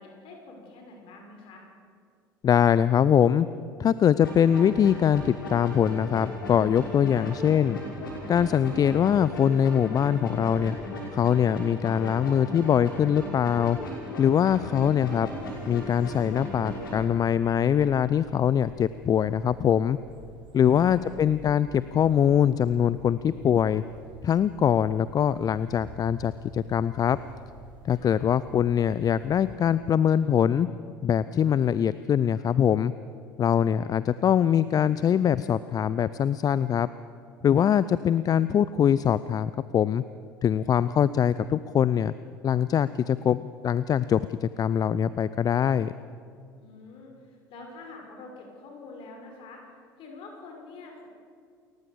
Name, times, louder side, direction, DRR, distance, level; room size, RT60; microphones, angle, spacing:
voice 1, 0.0-1.7 7.1-7.3 20.5-21.3 27.9-28.2 46.6-49.7 50.0-51.1, left 3 dB, 50° left, 2 dB, 5.8 m, -46 dB
voice 2, 2.4-3.5 3.8-7.8 8.3-10.8 11.1-13.8 14.2-15.3 15.7-20.0 20.5-23.8 24.2-27.2 27.8-30.7 31.0-32.9 33.4-36.9 37.4-40.0 40.4-42.1 42.4-45.9, left 9 dB, 35° left, 16 dB, 0.5 m, -23 dB
sound 1, 4.2-17.0, left 1 dB, 75° left, 6.0 m, -37 dB
sound 2, 15.0-29.6, right 2 dB, 45° right, 6.0 m, -50 dB
29.0 x 14.5 x 7.0 m, 2.3 s
figure-of-eight pair, 65°, 11 cm